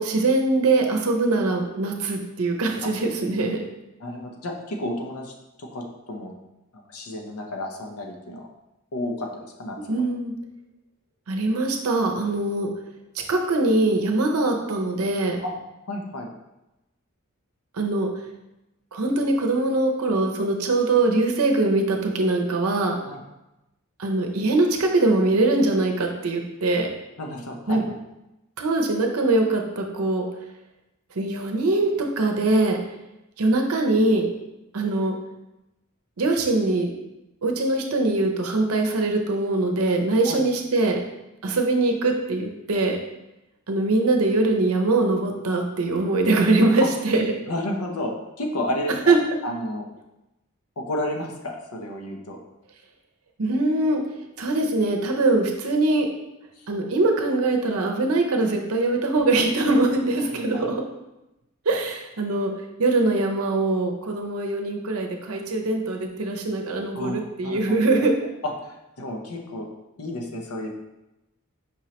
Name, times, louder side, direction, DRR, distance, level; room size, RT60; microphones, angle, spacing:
voice 1, 0.0-3.6 9.8-10.3 11.3-12.7 13.3-15.4 17.7-18.1 18.9-22.9 24.0-26.9 27.7-27.8 28.6-30.2 31.1-32.8 33.4-34.3 34.7-35.1 36.2-36.9 37.4-41.0 41.4-43.0 43.7-47.3 49.1-49.2 53.4-54.0 54.4-56.1 56.7-60.8 61.7-62.5 62.8-68.1, right 2 dB, 85° right, 3 dB, 0.6 m, -22 dB
voice 2, 4.0-5.3 5.6-6.4 6.9-8.5 8.9-10.0 15.4-15.5 15.8-16.3 23.0-23.2 27.2-28.0 40.2-40.4 46.8-46.9 47.5-49.1 49.4-49.9 50.8-52.4 56.5-56.7 60.3-60.7 66.9-68.1 68.4-69.7 70.0-70.7, left 1 dB, 90° left, 1 dB, 0.7 m, -31 dB
5.3 x 3.1 x 2.9 m, 0.95 s
head